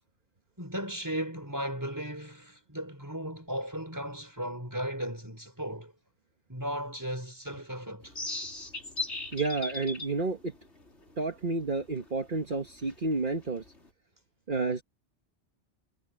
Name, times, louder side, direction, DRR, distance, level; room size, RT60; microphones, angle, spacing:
voice 1, 0.6-5.9 6.5-8.1, equal, 15° right, 4.9 m, -36 dB
sound 1, 8.0-13.9, left 2 dB, 80° left, 4.7 m, -40 dB
voice 2, 9.3-10.5 11.2-13.6 14.5-14.8, right 3 dB, 45° right, 1.6 m, -30 dB
omnidirectional pair, 1.2 m